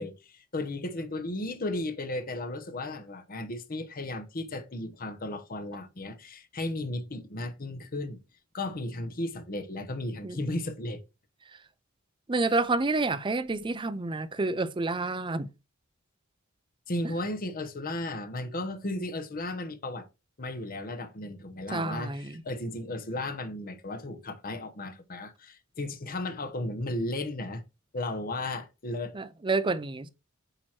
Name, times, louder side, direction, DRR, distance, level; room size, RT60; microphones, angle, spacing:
voice 1, 0.0-8.2 8.5-11.0 16.9-20.1 20.4-27.6 27.9-29.2, left 2 dB, 45° left, 0.9 m, -35 dB
voice 2, 12.3-15.5 21.7-22.4 29.1-30.1, right 3 dB, 25° right, 0.5 m, -29 dB
8.9 x 3.0 x 4.3 m
head